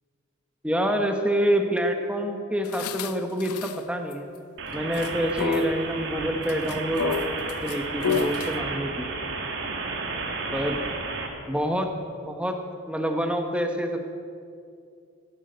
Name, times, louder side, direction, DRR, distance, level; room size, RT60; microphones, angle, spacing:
voice 1, 0.6-4.3 4.7-9.1 10.5-10.8 11.5-11.9 12.2-12.6 12.9-14.0, equal, 5° right, 4 dB, 1.1 m, -27 dB
sound 1, 2.6-3.8 4.1-4.2 4.7-5.1 5.4-5.7 6.5-8.5, left 6 dB, 90° left, 0.6 m, -30 dB
sound 2, 4.6-11.3, right 3 dB, 55° right, 1.9 m, -32 dB
16.0 x 11.0 x 8.0 m, 2.4 s
head